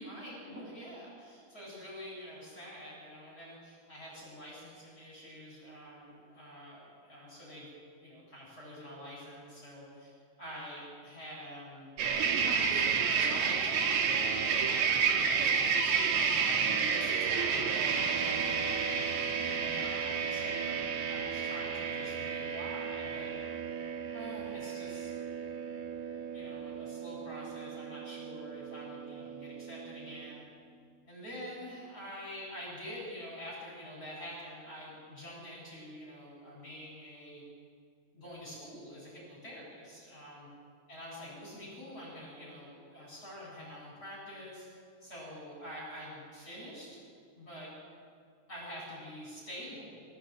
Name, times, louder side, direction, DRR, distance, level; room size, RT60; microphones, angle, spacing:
voice 1, 0.0-7.7 8.0-11.9 12.4-14.1 15.0-23.3 24.1-25.2 26.3-30.4 31.1-37.4 38.1-40.5 40.9-44.7 45.0-47.0 47.4-47.7 48.5-50.0, equal, 15° left, -6 dB, 7.9 m, -46 dB
sound 1, 12.0-30.4, right 6 dB, 85° right, 4.8 m, -31 dB
27.0 x 15.5 x 9.1 m, 2.2 s
omnidirectional pair, 5.8 m